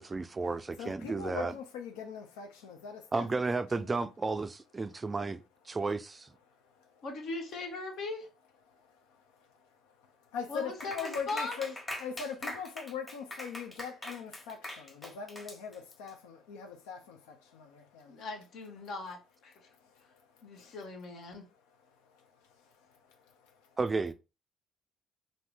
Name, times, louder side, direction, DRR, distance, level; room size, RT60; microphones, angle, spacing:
voice 1, 0.0-1.5 3.1-6.3 23.8-24.1, right 3 dB, 30° right, 0.3 m, -33 dB
voice 2, 0.8-3.3 3.8-3.9 6.5-7.1 9.6-18.2 19.6-19.8 20.3-20.8 21.7-23.8, left 6 dB, 80° left, 0.5 m, -42 dB
voice 3, 7.0-8.3 10.5-11.6 18.0-19.5 20.4-21.5, left 3 dB, 65° left, 1.0 m, -39 dB
Clapping, 10.8-16.1, left 1 dB, 20° left, 1.2 m, -42 dB
2.7 x 2.6 x 3.3 m
hypercardioid pair, 55°, 0 cm